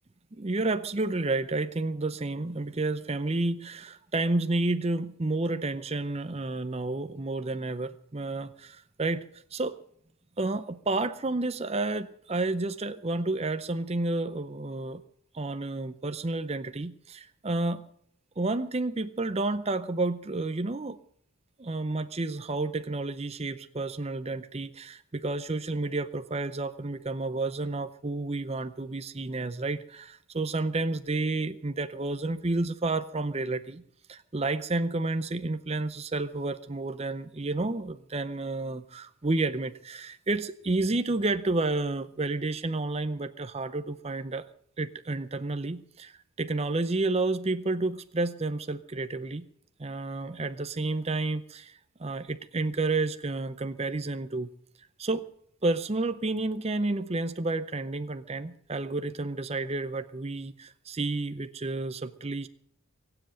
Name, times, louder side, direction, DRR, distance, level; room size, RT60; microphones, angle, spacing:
voice 1, 0.3-9.2 9.5-9.8 10.4-15.0 15.3-17.8 18.4-21.0 21.6-33.8 34.1-44.5 44.8-46.1 46.4-49.5 49.8-54.5 55.0-55.3 55.6-62.5, right 2 dB, 30° right, 11 dB, 0.6 m, -30 dB
23.5 x 7.9 x 7.6 m, 0.68 s
head